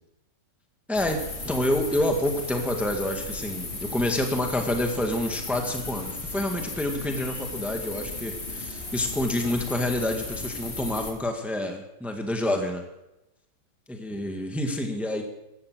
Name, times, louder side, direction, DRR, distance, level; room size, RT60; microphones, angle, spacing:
sound 1, 0.9-11.1, left 2 dB, 35° left, 2.9 m, -36 dB
voice 1, 0.9-12.8 13.9-15.2, left 1 dB, ahead, 4 dB, 1.8 m, -28 dB
16.0 x 13.5 x 6.3 m, 0.91 s
omnidirectional pair, 1.9 m